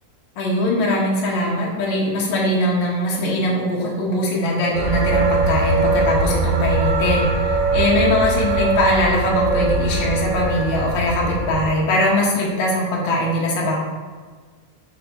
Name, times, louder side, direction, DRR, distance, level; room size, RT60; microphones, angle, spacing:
voice 1, 0.3-13.8, left 1 dB, 50° left, -3 dB, 1.5 m, -21 dB
sound 1, 4.7-11.7, right 2 dB, 85° right, 3.9 m, -21 dB
8.3 x 4.2 x 4.1 m, 1.5 s
omnidirectional pair, 4.0 m